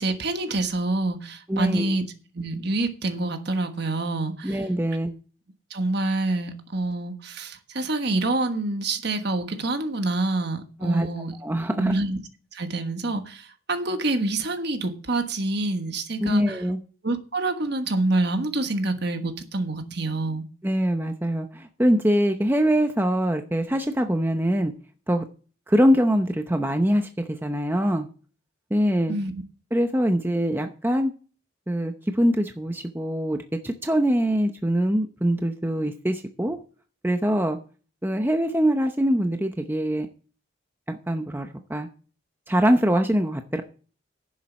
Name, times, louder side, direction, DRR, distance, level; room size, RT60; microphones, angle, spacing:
voice 1, 0.0-2.0 2.3-4.6 5.7-11.3 11.8-12.2 12.5-16.6 17.0-20.4 29.1-29.3, right 2 dB, 55° right, 1.3 m, -27 dB
voice 2, 1.5-1.9 4.4-5.1 10.8-11.1 11.4-11.9 16.2-16.8 20.6-24.7 25.1-25.2 25.7-28.1 28.7-29.1 29.7-31.1 31.7-33.4 33.6-36.6 37.0-37.6 38.0-40.1 40.9-41.9 42.5-43.6, equal, 10° right, 0.7 m, -23 dB
10.5 x 7.3 x 6.1 m
head